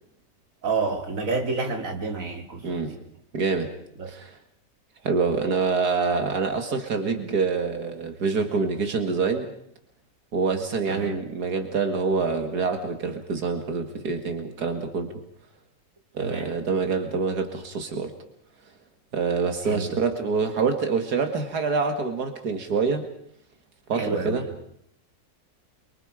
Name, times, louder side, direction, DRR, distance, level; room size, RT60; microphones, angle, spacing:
voice 1, 0.6-3.0 4.0-4.1 10.9-11.2 16.2-16.5 19.7-19.9 23.9-24.5, right 4 dB, 55° right, 4 dB, 2.8 m, -29 dB
voice 2, 2.6-3.0 3.3-3.7 4.1-4.4 5.0-9.5 10.3-15.2 16.1-18.1 19.1-23.1 23.9-24.4, right 4 dB, 85° right, 6 dB, 2.5 m, -26 dB
28.0 x 24.0 x 5.0 m, 0.69 s
omnidirectional pair, 1.6 m